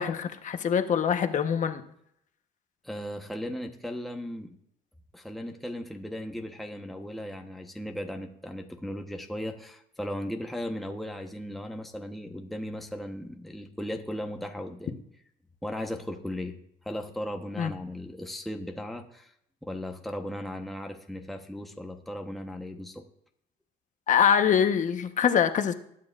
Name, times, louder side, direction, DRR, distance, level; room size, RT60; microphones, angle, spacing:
voice 1, 0.0-1.8 17.6-17.8 24.1-25.7, left 8 dB, 50° left, 8 dB, 1.1 m, -24 dB
voice 2, 2.8-4.6 5.1-15.0 15.6-16.6 16.8-19.3 19.6-23.0, left 1 dB, ahead, 3 dB, 1.1 m, -37 dB
21.0 x 9.6 x 2.5 m, 0.72 s
cardioid pair, 110°, 17 cm